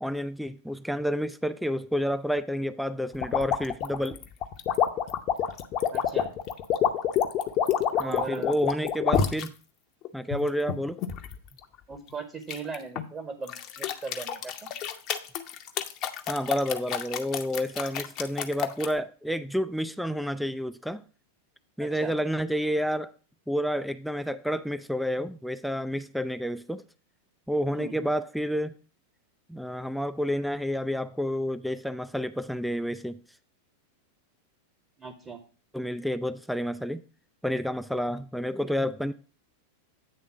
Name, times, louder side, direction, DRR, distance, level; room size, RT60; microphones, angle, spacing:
voice 1, 0.0-4.2 8.0-9.5 10.1-11.0 16.3-21.0 21.8-23.1 23.5-26.8 27.5-28.8 29.5-33.2 35.7-37.0 37.4-39.1, equal, ahead, 0.3 m, -29 dB
sound 1, 3.2-9.5 10.0-11.3 12.5-13.1 13.5-18.9, left 9 dB, 35° left, 0.8 m, -28 dB
voice 2, 5.9-6.3 8.0-8.6 11.9-14.7 21.8-22.1 27.7-28.1 35.0-35.4, right 4 dB, 20° right, 1.0 m, -38 dB
8.9 x 3.6 x 5.8 m
figure-of-eight pair, 90°, 0 cm